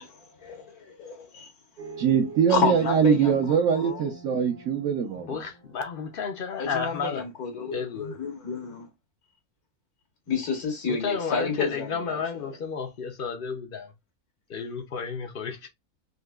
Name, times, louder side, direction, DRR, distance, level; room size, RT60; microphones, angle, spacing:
voice 1, 0.0-1.5 2.5-4.0 6.6-8.9 10.3-12.2, left 5 dB, 80° left, 1.8 m, -30 dB
sound 1, 1.8-6.2, right 2 dB, 40° right, 0.7 m, -40 dB
voice 2, 2.0-5.4, right 7 dB, 65° right, 1.0 m, -23 dB
voice 3, 5.2-7.2 7.7-8.2 10.9-13.9 14.5-15.7, left 5 dB, 55° left, 0.6 m, -32 dB
3.9 x 2.8 x 2.3 m
omnidirectional pair, 1.6 m